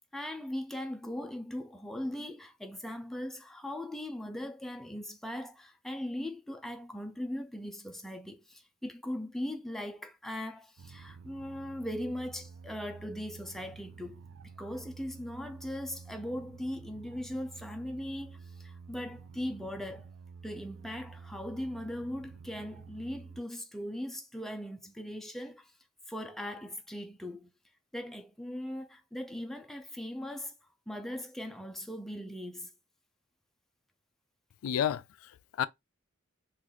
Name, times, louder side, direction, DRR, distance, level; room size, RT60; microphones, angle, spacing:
voice 1, 0.1-20.1 20.4-25.7 26.1-27.5 27.9-30.5 30.9-32.7, left 1 dB, ahead, 0.3 m, -39 dB
sound 1, 10.8-23.4, right 5 dB, 70° right, 0.3 m, -50 dB
voice 2, 34.6-35.7, left 9 dB, 85° left, 0.3 m, -31 dB
3.7 x 2.4 x 3.0 m
head